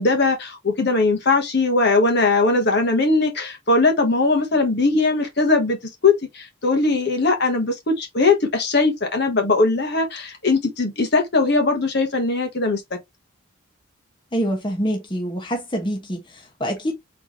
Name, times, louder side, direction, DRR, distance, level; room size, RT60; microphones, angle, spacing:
voice 1, 0.0-5.8 6.0-12.8, left 3 dB, 50° left, 1.2 m, -20 dB
voice 2, 14.3-16.9, equal, 20° left, 1.1 m, -26 dB
4.2 x 3.3 x 3.0 m
head